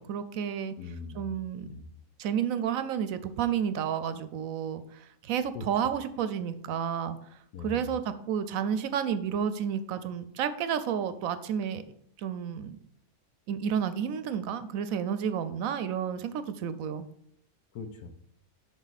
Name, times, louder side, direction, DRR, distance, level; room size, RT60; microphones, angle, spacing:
voice 1, 0.0-0.7 1.1-1.7 2.2-7.2 7.6-11.8 12.2-12.8 13.5-17.1, right 8 dB, 70° right, 12 dB, 0.9 m, -31 dB
voice 2, 0.8-1.3 1.6-1.8 5.5-5.6 7.5-7.9 17.7-18.1, left 5 dB, 85° left, 8 dB, 1.4 m, -40 dB
7.3 x 5.6 x 4.1 m, 0.69 s
omnidirectional pair, 1.6 m